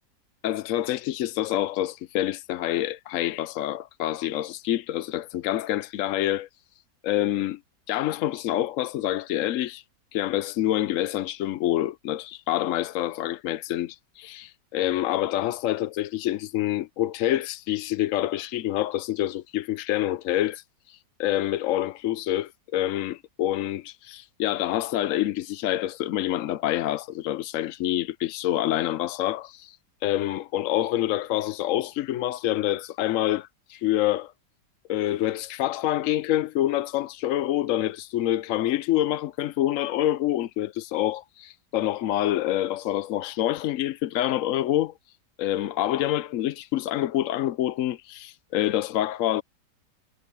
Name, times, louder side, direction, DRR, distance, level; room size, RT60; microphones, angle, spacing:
voice 1, 0.4-6.5 7.0-7.6 7.9-9.8 10.1-29.8 30.0-34.3 34.9-44.9 45.4-49.4, left 13 dB, 70° left, 0.8 m, -27 dB
omnidirectional pair, 1.9 m